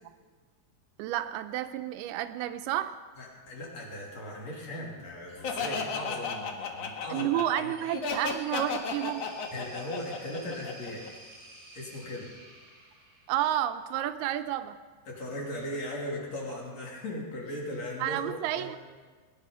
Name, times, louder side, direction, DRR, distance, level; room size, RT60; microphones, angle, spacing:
voice 1, 1.0-3.0 7.1-9.3 13.3-14.8 18.0-18.8, right 12 dB, 80° right, 10 dB, 2.5 m, -30 dB
voice 2, 3.2-7.3 7.6-7.7 9.5-11.0 11.7-12.3 15.1-18.7, left 1 dB, 45° left, -3 dB, 3.6 m, -38 dB
Laughter, 5.4-11.1, left 5 dB, 60° left, 1.8 m, -34 dB
sound 1, 7.5-13.7, right 2 dB, 25° right, 2.9 m, -51 dB
21.5 x 10.5 x 5.6 m, 1.5 s
omnidirectional pair, 4.5 m